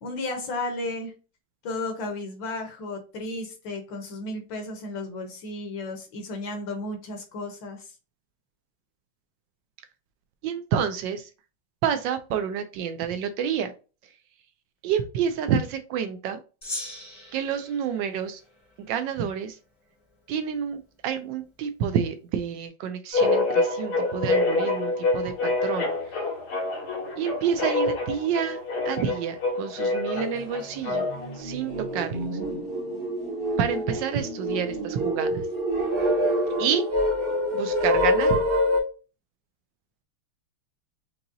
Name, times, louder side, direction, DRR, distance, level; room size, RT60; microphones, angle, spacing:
voice 1, 0.0-1.1 1.6-7.9, left 2 dB, 65° left, 4 dB, 1.5 m, -33 dB
voice 2, 10.4-11.3 11.8-13.7 14.8-16.4 17.3-18.4 18.8-19.6 20.3-25.9 27.2-28.6 28.8-31.0 31.3-32.3 33.6-35.5 36.6-36.9 37.5-38.4, right 8 dB, 75° right, 9 dB, 1.1 m, -28 dB
Gong, 16.6-19.2, left 1 dB, 20° left, 0.8 m, -40 dB
sound 1, 23.1-31.4, left 3 dB, 90° left, 2.5 m, -26 dB
sound 2, 30.2-30.3 30.7-38.8, equal, 45° right, 0.8 m, -26 dB
5.4 x 2.8 x 2.6 m, 0.33 s
omnidirectional pair, 2.3 m